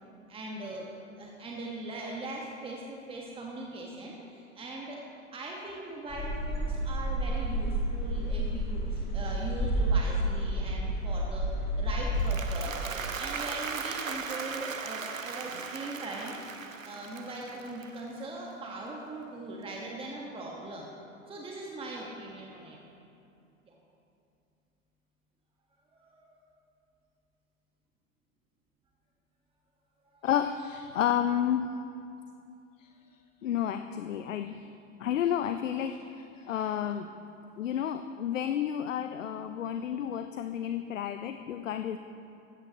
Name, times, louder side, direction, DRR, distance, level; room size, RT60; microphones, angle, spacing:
voice 1, 0.3-5.0 5.3-16.4 16.8-20.9 21.3-22.8 23.6-23.7 25.9-26.4 30.1-30.3 36.4-36.6, right 2 dB, 15° right, -2 dB, 1.4 m, -40 dB
sound 1, 6.1-12.2, right 1 dB, 25° left, 2.4 m, -30 dB
Applause, 12.0-18.4, right 5 dB, 85° right, 0.9 m, -38 dB
voice 2, 30.2-31.7 32.8-32.9 33.4-34.7 35.0-37.1 37.6-42.0, left 9 dB, 75° left, 9 dB, 0.6 m, -31 dB
15.5 x 13.0 x 3.0 m, 2.6 s
figure-of-eight pair, 95°, 39 cm